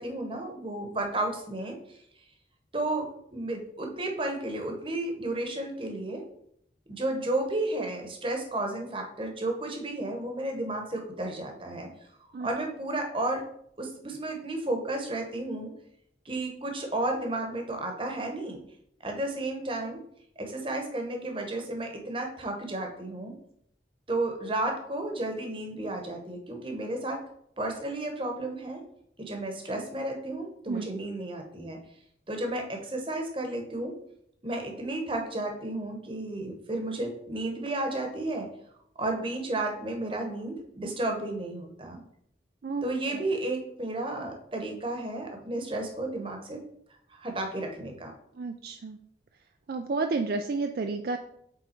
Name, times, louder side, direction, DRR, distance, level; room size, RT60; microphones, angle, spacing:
voice 1, 0.0-2.0 2.7-6.2 6.9-11.9 12.4-13.4 13.8-15.7 16.2-18.6 19.0-20.0 20.4-23.3 24.1-27.2 27.6-28.8 29.2-31.8 32.3-34.0 34.4-38.5 39.0-42.0 42.8-46.6 47.1-48.1, right 2 dB, 30° right, 3 dB, 1.0 m, -32 dB
voice 2, 42.6-43.2 48.3-49.0 49.7-51.2, right 3 dB, 55° right, 5 dB, 0.4 m, -31 dB
7.9 x 3.6 x 4.4 m, 0.72 s
head